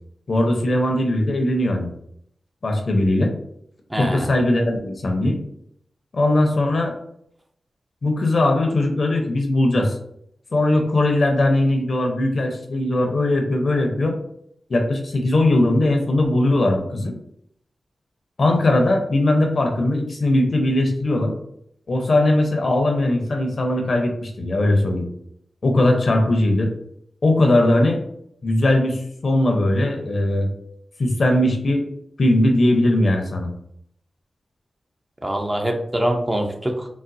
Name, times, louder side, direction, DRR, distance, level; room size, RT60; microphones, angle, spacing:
voice 1, 0.3-1.9 2.6-3.3 4.0-5.4 6.1-7.0 8.0-10.0 10.5-14.2 14.7-17.1 18.4-21.3 21.9-25.1 25.6-26.7 27.2-28.0 28.4-30.5 31.0-31.9 32.2-33.5, left 1 dB, 60° left, 3 dB, 0.6 m, -19 dB
voice 2, 3.9-4.3 35.2-36.9, right 1 dB, 20° right, 2 dB, 0.6 m, -24 dB
4.0 x 2.1 x 2.5 m, 0.71 s
cardioid pair, 45°, 0 cm